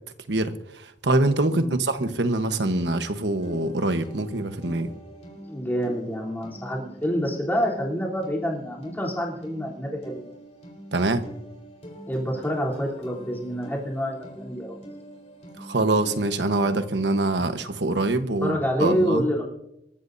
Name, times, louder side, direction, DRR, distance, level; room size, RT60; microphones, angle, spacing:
voice 1, 0.3-4.9 10.9-11.2 15.6-19.2, right 2 dB, 80° right, 8 dB, 1.2 m, -24 dB
voice 2, 1.5-1.8 5.5-10.3 12.1-14.8 17.4-17.6 18.4-19.4, equal, 10° left, -5 dB, 3.3 m, -27 dB
sound 1, 3.4-16.9, right 1 dB, 35° left, 3.9 m, -44 dB
26.0 x 14.0 x 2.7 m, 0.85 s
head